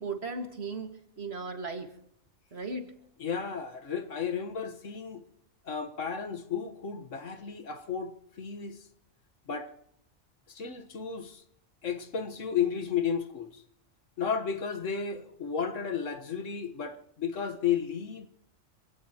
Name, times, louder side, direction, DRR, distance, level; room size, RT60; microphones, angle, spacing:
voice 1, 0.0-1.9 2.5-2.9, right 3 dB, 55° right, 2.1 m, -36 dB
voice 2, 3.2-5.2 5.7-8.8 9.5-9.7 10.5-11.4 11.8-13.6 14.2-18.3, left 7 dB, 70° left, 1.6 m, -33 dB
26.5 x 17.5 x 2.9 m
omnidirectional pair, 1.3 m